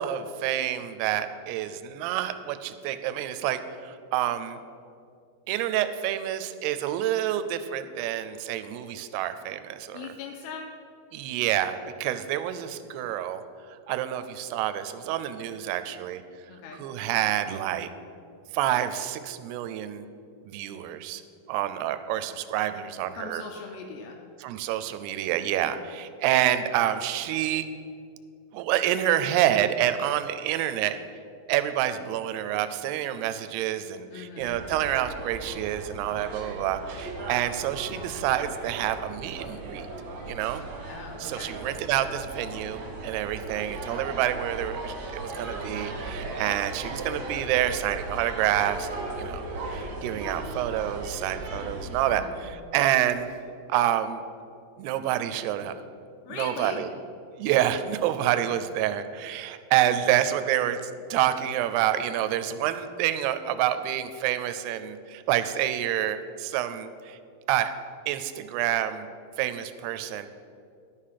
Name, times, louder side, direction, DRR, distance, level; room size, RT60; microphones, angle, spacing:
voice 1, 0.0-4.6 5.5-10.1 11.1-13.4 13.9-16.2 16.8-17.9 18.5-20.1 20.4-21.2 21.5-23.4 24.4-27.7 28.5-31.0 31.5-39.9 40.3-40.6 41.2-48.9 49.2-49.4 49.7-53.3 53.7-54.2 54.8-55.7 56.3-56.9 57.4-60.8 61.1-67.2 67.5-67.7 68.1-69.1 69.4-70.3, right 12 dB, 80° right, 10 dB, 2.5 m, -28 dB
voice 2, 9.9-10.7 16.5-16.8 23.2-24.2 34.1-34.5 40.9-41.5 52.1-52.4 56.2-56.8, left 5 dB, 85° left, 1 dB, 2.9 m, -40 dB
sound 1, 34.4-52.1, right 2 dB, 60° right, 1.9 m, -37 dB
11.5 x 6.6 x 5.7 m, 2.5 s
omnidirectional pair, 4.9 m